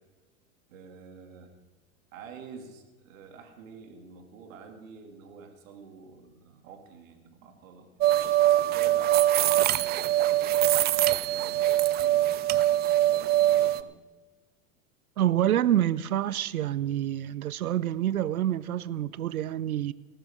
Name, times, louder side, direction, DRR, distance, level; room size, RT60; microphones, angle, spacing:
voice 1, 0.7-1.5 2.1-7.9 8.6-12.5 13.1-13.9, right 5 dB, 65° right, 2.6 m, -48 dB
sound 1, 8.0-13.8, right 13 dB, 25° right, 0.4 m, -23 dB
voice 2, 15.2-19.9, right 12 dB, 85° right, 0.6 m, -27 dB
19.0 x 12.5 x 3.7 m
hypercardioid pair, 90°, 42 cm